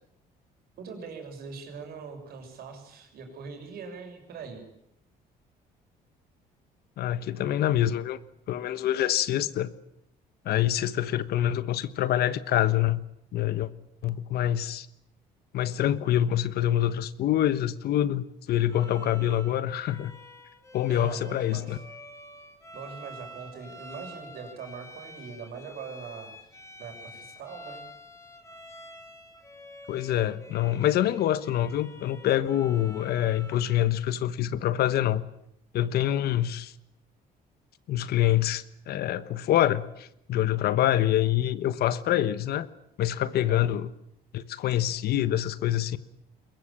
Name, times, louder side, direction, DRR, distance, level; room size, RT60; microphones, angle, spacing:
voice 1, 0.8-4.6 20.9-21.8 22.7-26.3 26.8-27.9 43.5-43.7, right 5 dB, 65° right, 4 dB, 6.7 m, -41 dB
voice 2, 7.0-8.2 8.5-9.7 10.4-13.0 13.3-13.7 14.0-14.9 15.5-20.1 20.7-21.8 29.9-35.2 35.7-36.7 37.9-42.7 43.0-43.9 44.3-46.0, left 12 dB, 70° left, 14 dB, 1.3 m, -26 dB
Bowed string instrument, 18.7-33.9, left 1 dB, 15° left, 6.7 m, -48 dB
22.0 x 21.5 x 8.8 m, 0.78 s
cardioid pair, 110°, 17 cm